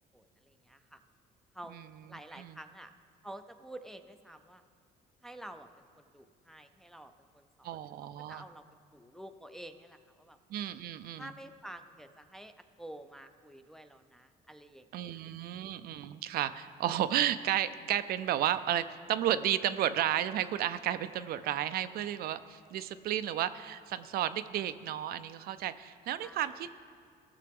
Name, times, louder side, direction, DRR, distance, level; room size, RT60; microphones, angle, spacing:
voice 1, 0.1-1.0 1.5-2.9 3.2-4.6 5.2-8.6 8.9-10.4 11.2-15.2 26.2-26.7, right 1 dB, ahead, 7 dB, 0.4 m, -50 dB
voice 2, 7.6-8.4 10.5-11.2 14.9-26.7, right 11 dB, 65° right, 12 dB, 0.4 m, -32 dB
15.5 x 6.6 x 3.5 m, 2.1 s
cardioid pair, 110°, 17 cm